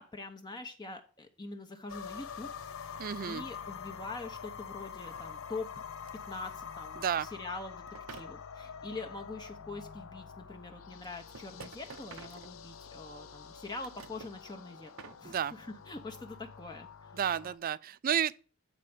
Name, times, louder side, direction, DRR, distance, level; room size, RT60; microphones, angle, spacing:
voice 1, 0.0-2.5 3.2-5.9 6.3-17.2, left 3 dB, 20° left, 0.6 m, -44 dB
sound 1, 1.9-17.6, left 6 dB, 75° left, 0.6 m, -46 dB
voice 2, 3.0-3.4 7.0-7.3 15.2-15.5 17.1-18.4, right 9 dB, 45° right, 0.3 m, -31 dB
sound 2, 6.1-6.2 7.9-8.3 10.1-10.2 11.0-13.0 13.6-14.4 14.8-15.2, right 5 dB, 90° right, 0.7 m, -49 dB
8.2 x 4.3 x 4.9 m
head